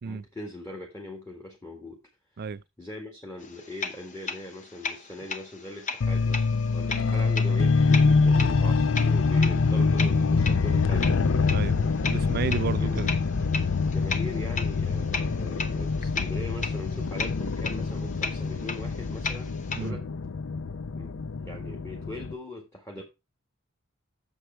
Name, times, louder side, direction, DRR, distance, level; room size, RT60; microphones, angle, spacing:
voice 1, 0.0-2.0 2.8-6.5 6.7-11.1 12.4-13.1 13.9-19.5 19.8-20.0 20.8-23.0, left 2 dB, 15° left, 1.8 m, -41 dB
sound 1, 3.4-19.9, left 4 dB, 35° left, 0.8 m, -37 dB
sound 2, 6.0-22.3, left 4 dB, 70° left, 0.6 m, -25 dB
voice 2, 11.5-13.1 19.8-20.0, right 5 dB, 50° right, 0.4 m, -33 dB
8.3 x 7.0 x 4.6 m
head